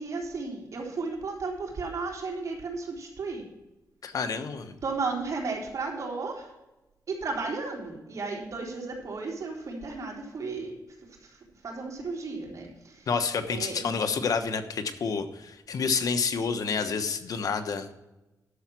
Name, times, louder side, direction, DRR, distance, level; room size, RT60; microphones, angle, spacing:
voice 1, 0.0-3.4 4.8-6.4 7.1-10.7 11.6-12.7 13.5-13.9, right 4 dB, 55° right, -1 dB, 3.7 m, -34 dB
voice 2, 4.0-4.8 13.1-17.9, left 5 dB, 70° left, 8 dB, 1.1 m, -29 dB
11.5 x 7.1 x 6.1 m, 1.0 s
cardioid pair, 95°, 6 cm